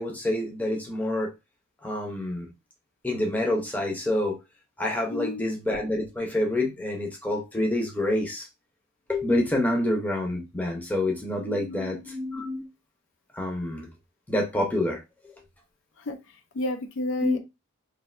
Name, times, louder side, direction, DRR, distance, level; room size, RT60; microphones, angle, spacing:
voice 1, 0.0-1.3 1.8-2.5 3.0-4.4 4.8-8.5 9.1-12.6 13.3-13.9 14.3-15.0 17.2-17.4, left 1 dB, 10° left, 0.6 m, -27 dB
voice 2, 5.1-5.5 11.4-12.0 16.0-17.4, left 1 dB, 65° left, 0.4 m, -32 dB
3.2 x 2.5 x 2.4 m
head